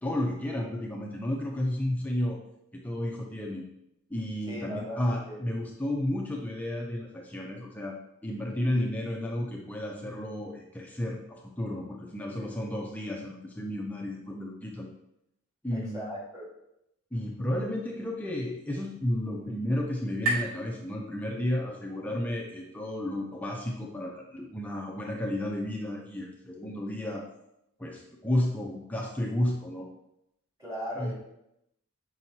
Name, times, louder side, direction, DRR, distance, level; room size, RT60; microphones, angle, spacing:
voice 1, 0.0-2.4 2.7-3.6 4.1-14.9 15.6-16.2 17.1-27.3 27.8-29.9 31.0-31.1, left 1 dB, 10° left, -1 dB, 0.6 m, -32 dB
voice 2, 4.5-5.4 15.7-16.5 30.6-31.1, equal, 15° right, -7 dB, 2.5 m, -38 dB
sound 1, 17.9-21.7, right 2 dB, 75° right, 2.3 m, -37 dB
7.6 x 5.4 x 2.8 m, 0.82 s
head